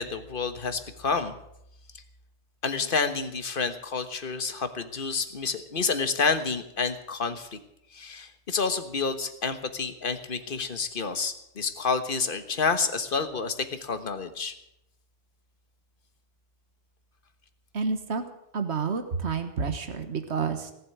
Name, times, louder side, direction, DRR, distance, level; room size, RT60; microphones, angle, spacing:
voice 1, 0.0-1.3 1.9-2.0 2.6-7.6 7.9-14.5, left 4 dB, 50° left, 9 dB, 1.5 m, -29 dB
voice 2, 17.7-18.2 18.5-20.7, right 5 dB, 75° right, 8 dB, 1.6 m, -29 dB
18.5 x 7.7 x 9.4 m, 0.80 s
omnidirectional pair, 1.1 m